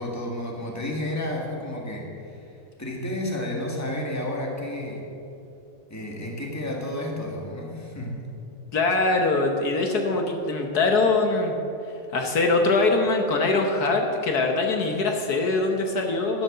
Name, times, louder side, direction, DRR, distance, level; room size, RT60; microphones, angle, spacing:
voice 1, 0.0-5.0 5.9-8.1, left 1 dB, 10° left, -1 dB, 1.7 m, -31 dB
voice 2, 8.7-11.6 12.1-16.4, left 3 dB, 65° left, 3 dB, 1.5 m, -23 dB
11.5 x 9.3 x 6.7 m, 2.7 s
omnidirectional pair, 1.9 m